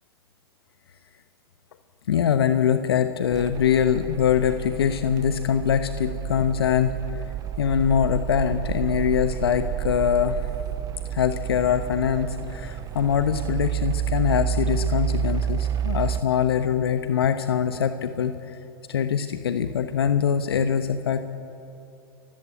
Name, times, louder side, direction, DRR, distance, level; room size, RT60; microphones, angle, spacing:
voice 1, 2.1-7.2 7.6-10.4 11.1-18.6 18.9-21.2, left 8 dB, 75° left, 9 dB, 1.1 m, -23 dB
sound 1, 3.3-16.2, right 10 dB, 30° right, 0.7 m, -30 dB
30.0 x 15.5 x 9.1 m, 2.8 s
hypercardioid pair, 100°, 13 cm